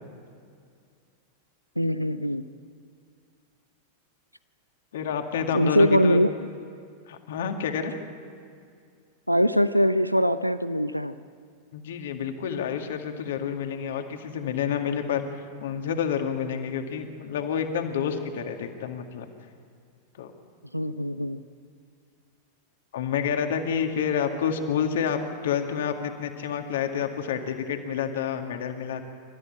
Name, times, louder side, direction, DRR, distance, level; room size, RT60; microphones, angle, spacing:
voice 1, 1.8-2.4 5.5-6.3 9.3-11.1 20.7-21.4, equal, 90° right, 14 dB, 0.5 m, -22 dB
voice 2, 4.9-6.2 7.1-7.9 11.7-15.2 15.6-19.3 20.2-20.3 22.9-29.0, left 7 dB, 60° left, 5 dB, 2.1 m, -29 dB
27.5 x 14.0 x 9.0 m, 2.3 s
figure-of-eight pair, 90°, 0 cm